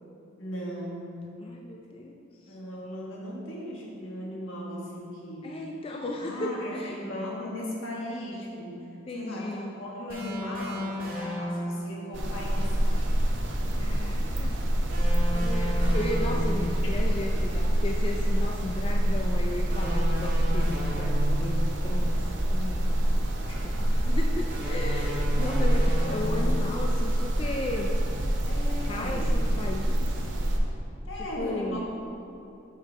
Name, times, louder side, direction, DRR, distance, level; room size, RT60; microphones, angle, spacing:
voice 1, 0.4-1.1 2.5-5.5 6.2-13.1 16.8-17.0 23.5-23.7 28.5-29.5 31.1-31.8, left 1 dB, 80° left, -4 dB, 1.6 m, -37 dB
voice 2, 1.4-2.6 5.4-7.0 9.1-9.7 12.6-12.7 13.8-14.6 15.3-22.2 22.5-23.0 23.5-23.6 23.9-27.9 28.9-30.1 31.4-31.8, left 1 dB, 30° left, 0 dB, 0.3 m, -35 dB
sound 1, 10.1-11.9 14.9-16.8 19.7-21.6 24.5-26.7, equal, 45° right, 1.6 m, -34 dB
sound 2, 12.1-30.6, right 1 dB, 65° right, 0.8 m, -26 dB
7.4 x 6.4 x 3.6 m, 2.8 s
head